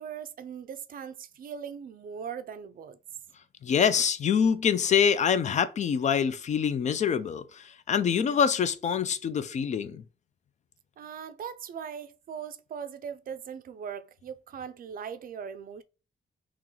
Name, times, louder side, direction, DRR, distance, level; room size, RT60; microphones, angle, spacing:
voice 1, 0.0-3.0 11.0-15.8, right 7 dB, 55° right, 0.4 m, -40 dB
voice 2, 3.6-10.0, left 7 dB, 40° left, 0.4 m, -25 dB
3.0 x 3.0 x 3.8 m
cardioid pair, 135°, 18 cm